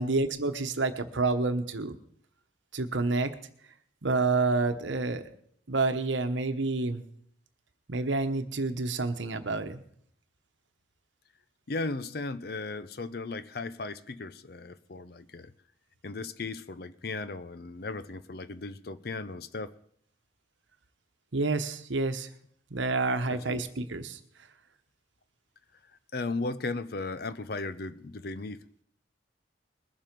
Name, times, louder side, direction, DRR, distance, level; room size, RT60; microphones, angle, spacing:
voice 1, 0.0-2.0 2.7-3.3 4.0-5.3 5.7-7.0 7.9-9.8 21.3-22.3 22.7-24.2, right 3 dB, 75° right, 9 dB, 1.1 m, -28 dB
voice 2, 11.7-15.5 16.0-19.7 23.3-23.6 26.1-28.7, left 3 dB, 55° left, 14 dB, 0.6 m, -36 dB
21.0 x 7.5 x 5.2 m, 0.65 s
head